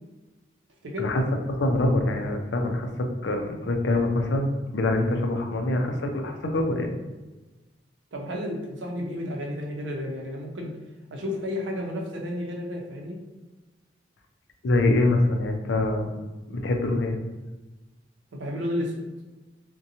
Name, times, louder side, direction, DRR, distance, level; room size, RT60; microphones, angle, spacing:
voice 1, 1.5-2.9 3.2-6.9 14.6-16.1 16.5-17.2, left 2 dB, 75° left, 3 dB, 0.4 m, -24 dB
voice 2, 8.1-10.8 11.1-13.2 18.3-18.9, left 1 dB, 90° right, 0 dB, 0.6 m, -32 dB
2.6 x 2.2 x 2.7 m, 1.1 s
head